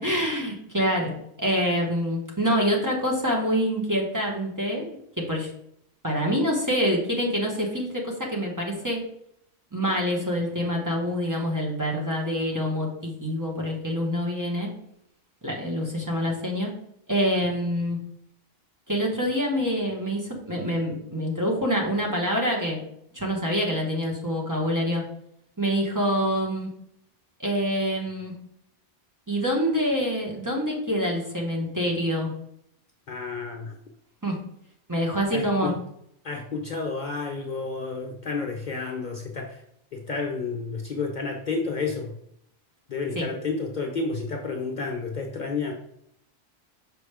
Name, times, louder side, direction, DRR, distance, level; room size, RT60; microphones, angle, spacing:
voice 1, 0.0-5.5 6.0-9.0 9.7-14.7 15.4-16.7 17.1-18.0 18.9-22.8 23.1-25.0 25.6-26.7 27.4-28.3 29.3-32.3 34.2-34.4 34.9-35.7 43.1-43.3, equal, 20° right, -2 dB, 1.3 m, -26 dB
voice 2, 33.1-33.8 35.3-35.7 36.2-39.6 39.9-42.1 42.9-45.7, left 4 dB, 50° left, 2 dB, 0.8 m, -31 dB
6.1 x 4.7 x 3.4 m, 0.72 s
omnidirectional pair, 1.1 m